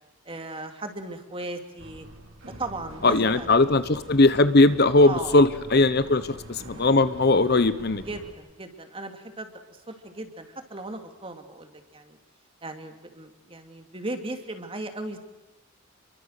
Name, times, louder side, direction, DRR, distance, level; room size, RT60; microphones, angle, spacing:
voice 1, 0.2-2.1 2.6-3.5 5.0-5.3 8.0-12.2 12.6-15.2, right 2 dB, 25° right, 6 dB, 2.7 m, -37 dB
sound 1, 1.8-8.3, right 1 dB, 65° right, 4.9 m, -44 dB
voice 2, 3.0-8.0, left 2 dB, 45° left, 13 dB, 0.9 m, -19 dB
30.0 x 23.5 x 6.6 m, 1.0 s
head